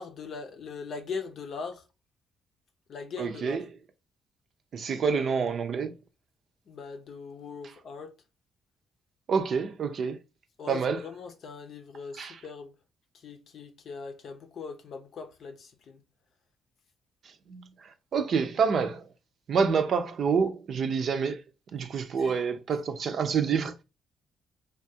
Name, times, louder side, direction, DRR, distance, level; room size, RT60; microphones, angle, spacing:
voice 1, 0.0-1.8 2.9-3.6 6.7-8.1 10.6-12.7 13.2-16.0 22.2-22.4, left 5 dB, 60° left, 0.6 m, -40 dB
voice 2, 3.2-3.7 4.7-5.9 9.3-10.2 10.7-11.0 12.2-12.4 17.5-19.1 19.5-21.4 21.7-23.8, right 6 dB, 55° right, 0.5 m, -27 dB
3.4 x 2.3 x 2.7 m
cardioid pair, 90°, 0 cm